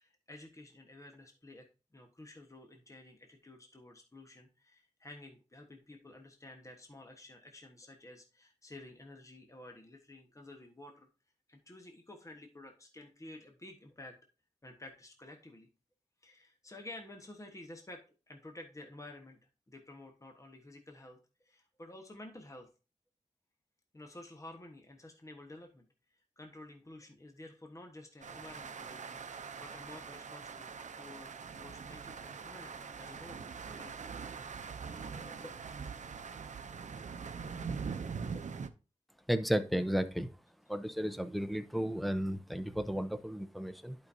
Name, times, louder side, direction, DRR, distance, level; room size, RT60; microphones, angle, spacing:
voice 1, 0.0-1.6 1.9-11.1 11.5-14.1 14.6-15.7 16.2-18.0 18.3-19.4 19.7-22.7 23.9-25.9 26.4-34.1 35.0-35.6 38.3-38.5, left 1 dB, 25° left, 1.3 m, -52 dB
sound 1, 28.2-38.7, right 5 dB, 80° right, 0.6 m, -43 dB
voice 2, 39.3-40.3 40.7-44.0, equal, ahead, 0.7 m, -33 dB
11.0 x 5.2 x 2.7 m
wide cardioid pair, 85°, 12 cm